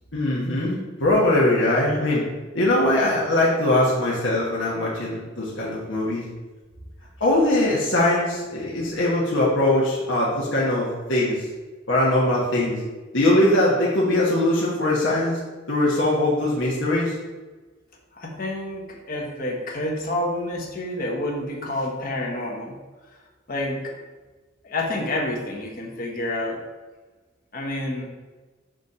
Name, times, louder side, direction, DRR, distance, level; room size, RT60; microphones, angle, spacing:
voice 1, 0.1-2.2 2.5-6.2 7.2-11.5 11.9-12.8 13.1-15.4 15.7-17.1, left 1 dB, 70° left, -5 dB, 1.3 m, -21 dB
voice 2, 18.1-22.7 23.5-24.0 24.6-26.6 27.5-28.1, left 1 dB, 45° left, 0 dB, 1.2 m, -28 dB
6.2 x 4.2 x 4.9 m, 1.3 s
head